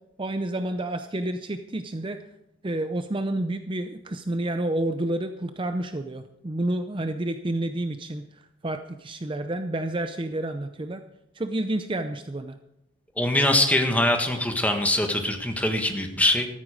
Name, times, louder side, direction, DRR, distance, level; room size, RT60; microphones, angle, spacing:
voice 1, 0.2-2.2 2.6-11.0 11.3-12.6, right 1 dB, 25° right, 8 dB, 0.6 m, -29 dB
voice 2, 13.2-16.5, left 1 dB, 5° left, 4 dB, 1.5 m, -23 dB
14.0 x 13.5 x 5.0 m, 0.87 s
head